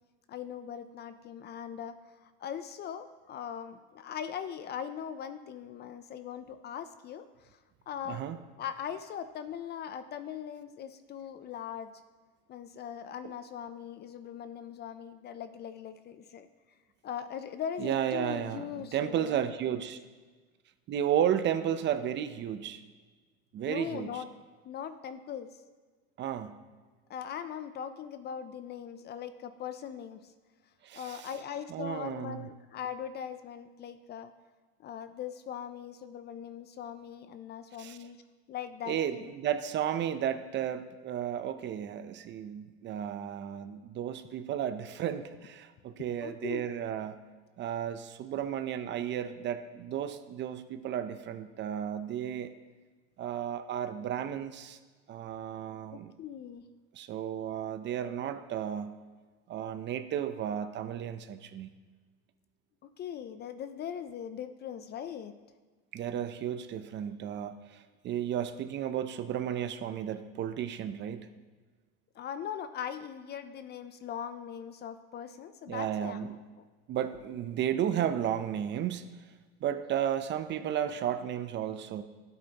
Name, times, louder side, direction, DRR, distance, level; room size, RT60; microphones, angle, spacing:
voice 1, 0.3-1.9 2.2-7.6 7.9-8.2 8.6-11.9 12.5-16.5 17.0-19.8 23.7-24.3 24.6-25.5 27.1-30.3 30.9-34.3 34.8-38.2 38.5-39.3 46.2-46.6 55.9-56.7 63.0-65.3 72.2-76.4, left 8 dB, 35° left, 11 dB, 0.5 m, -40 dB
voice 2, 8.1-8.4 17.8-20.0 20.9-22.8 23.5-24.2 26.2-26.6 30.8-31.3 31.7-32.5 37.8-38.0 38.9-47.2 47.6-52.5 53.2-54.8 55.1-56.1 56.9-59.0 59.5-61.7 65.9-71.3 75.7-76.3 76.9-79.1 79.6-82.0, right 9 dB, 35° right, 10 dB, 0.6 m, -33 dB
12.5 x 8.3 x 2.9 m, 1.4 s
supercardioid pair, 120°, 31 cm